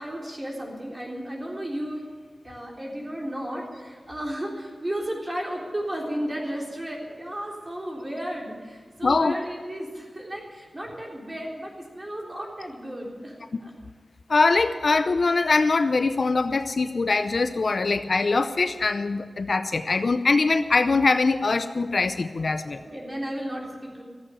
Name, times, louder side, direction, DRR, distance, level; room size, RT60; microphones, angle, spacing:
voice 1, 0.0-2.0 2.4-13.4 13.6-13.7 22.6-24.0, equal, 25° right, -2 dB, 3.6 m, -34 dB
voice 2, 9.0-9.3 14.3-22.8, left 3 dB, 55° left, 10 dB, 0.6 m, -22 dB
15.0 x 8.1 x 9.1 m, 1.5 s
wide cardioid pair, 85°, 0 cm